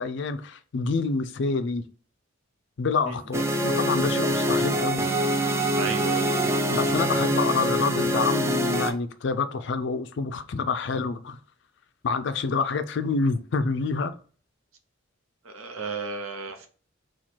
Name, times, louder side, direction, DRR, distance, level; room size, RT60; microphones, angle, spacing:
voice 1, 0.0-1.8 2.8-5.1 6.7-11.4 12.0-14.1, left 4 dB, 55° left, 0.4 m, -27 dB
sound 1, 3.3-8.9, equal, 15° right, 0.3 m, -24 dB
voice 2, 5.8-6.3 15.4-16.7, right 4 dB, 80° right, 0.8 m, -33 dB
4.3 x 2.4 x 4.3 m
head